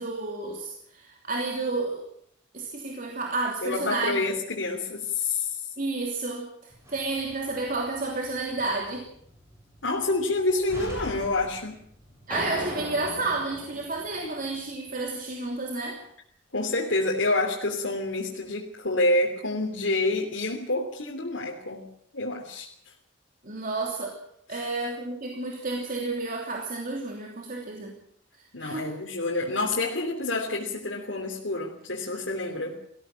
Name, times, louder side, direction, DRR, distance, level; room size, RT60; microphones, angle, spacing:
voice 1, 0.0-2.0 2.5-4.2 5.8-6.5 6.9-9.1 12.3-16.0 23.4-24.2 24.5-27.9 28.6-28.9, right 3 dB, 45° right, 0 dB, 3.1 m, -31 dB
voice 2, 3.6-5.6 9.8-11.8 14.2-14.3 16.5-21.9 22.1-22.7 24.5-24.7 28.5-32.8, left 2 dB, 90° left, -2 dB, 3.1 m, -28 dB
Slam, 6.7-12.3, equal, 15° right, 7.5 m, -45 dB
sound 1, 12.3-14.7, equal, 5° left, 7.0 m, -38 dB
19.0 x 15.5 x 8.8 m, 0.68 s
head